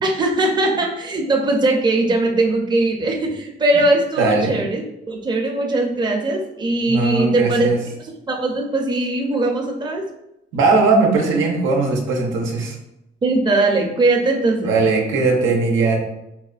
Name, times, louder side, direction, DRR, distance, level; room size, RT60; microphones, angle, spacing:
voice 1, 0.0-7.7 8.3-10.0 13.2-14.7, right 2 dB, 20° right, 1 dB, 0.6 m, -20 dB
voice 2, 4.2-4.5 6.9-7.8 10.5-12.7 14.6-16.0, right 3 dB, 85° right, 1 dB, 0.6 m, -18 dB
4.1 x 2.1 x 2.4 m, 0.84 s
cardioid pair, 90°, 20 cm